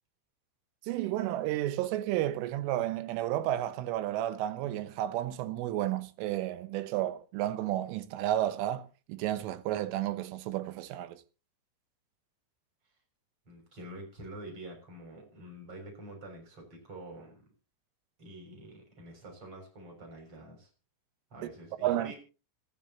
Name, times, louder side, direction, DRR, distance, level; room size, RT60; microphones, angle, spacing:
voice 1, 0.9-11.2 21.8-22.1, right 13 dB, 80° right, 3.4 m, -32 dB
voice 2, 13.5-17.4 18.2-20.7 21.3-22.1, right 1 dB, 25° right, 7.2 m, -47 dB
26.0 x 9.5 x 3.0 m
omnidirectional pair, 5.9 m